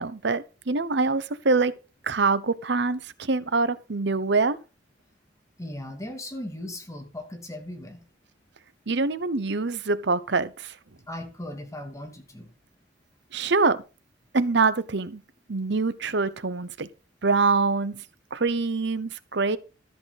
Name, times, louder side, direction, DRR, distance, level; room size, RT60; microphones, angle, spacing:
voice 1, 0.0-1.7 2.0-4.6 8.9-10.7 13.3-13.8 14.3-15.2 15.5-16.9 17.2-18.0 18.3-19.6, right 3 dB, 65° right, 1.0 m, -24 dB
voice 2, 5.6-8.1 11.1-12.5, left 1 dB, 15° left, 2.7 m, -37 dB
13.5 x 8.3 x 4.2 m
head